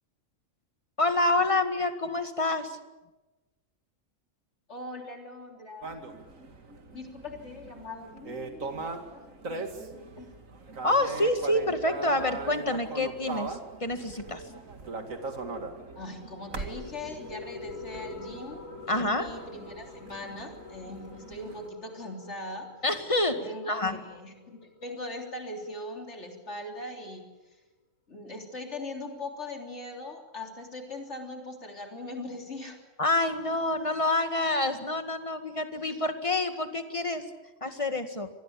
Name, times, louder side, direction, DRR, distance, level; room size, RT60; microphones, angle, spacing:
voice 1, 1.0-2.8 10.8-14.4 18.9-19.3 22.8-23.4 23.7-24.0 33.0-37.2 37.6-38.3, left 2 dB, 25° left, 8 dB, 2.0 m, -27 dB
voice 2, 4.7-5.9 6.9-10.3 16.0-22.7 23.4-27.6 28.1-32.8, left 2 dB, 60° left, 3 dB, 3.7 m, -41 dB
sound 1, 5.8-21.7, right 3 dB, 90° right, 2.6 m, -40 dB
sound 2, 15.9-26.9, left 4 dB, 80° left, 5.5 m, -47 dB
25.5 x 20.0 x 8.6 m, 1.1 s
omnidirectional pair, 1.3 m